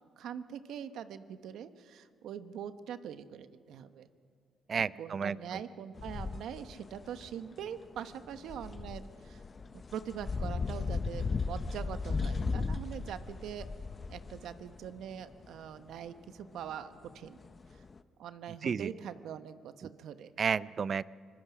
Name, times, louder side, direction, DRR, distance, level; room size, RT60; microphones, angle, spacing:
voice 1, 0.2-4.1 5.0-9.4 9.7-13.7 14.1-17.4 17.7-17.8 18.2-20.3, right 9 dB, 80° right, 10 dB, 1.0 m, -43 dB
voice 2, 4.7-5.4 18.6-18.9 20.4-21.0, right 6 dB, 45° right, 18 dB, 0.5 m, -31 dB
sound 1, 6.0-18.0, left 4 dB, 35° left, 0.8 m, -37 dB
25.0 x 21.0 x 6.1 m, 2.1 s
cardioid pair, 90°, 0 cm